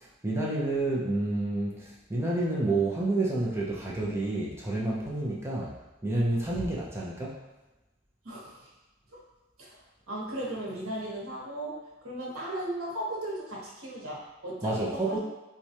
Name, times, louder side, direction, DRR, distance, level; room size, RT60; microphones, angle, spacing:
voice 1, 0.0-5.8 6.0-7.5 14.6-15.2, right 2 dB, 15° right, -5 dB, 0.6 m, -29 dB
voice 2, 8.2-8.7 9.1-9.2 9.6-15.2, right 1 dB, 90° right, -4 dB, 1.1 m, -37 dB
4.5 x 2.3 x 2.8 m, 1.1 s
head